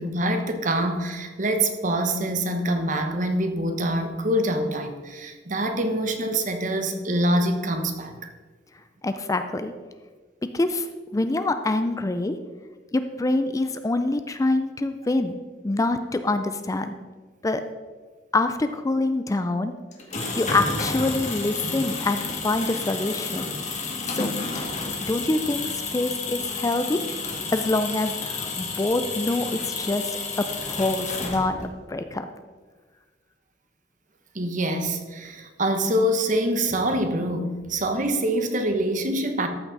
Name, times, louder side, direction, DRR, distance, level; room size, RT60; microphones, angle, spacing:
voice 1, 0.0-8.3 34.3-39.5, right 1 dB, 45° right, 6 dB, 1.1 m, -25 dB
voice 2, 9.0-9.7 10.5-10.9 11.1-12.4 12.9-15.4 15.6-16.9 17.4-17.6 18.3-19.7 20.4-23.5 24.1-24.3 24.8-27.0 27.5-32.3, left 2 dB, 20° left, 9 dB, 0.4 m, -25 dB
sound 1, 19.9-31.7, left 3 dB, 40° left, 1.7 m, -31 dB
13.5 x 5.9 x 4.0 m, 1.4 s
head